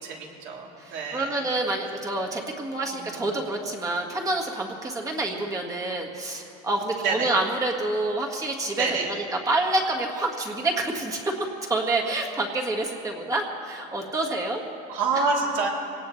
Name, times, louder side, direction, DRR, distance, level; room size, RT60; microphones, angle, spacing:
voice 1, 0.0-1.4 2.9-3.4 7.0-7.3 8.7-9.1 14.9-15.7, right 4 dB, 65° right, -2 dB, 3.3 m, -28 dB
voice 2, 0.8-14.6, right 2 dB, 15° right, 0 dB, 1.7 m, -28 dB
23.5 x 17.5 x 3.2 m, 2.6 s
cardioid pair, 150°, 21 cm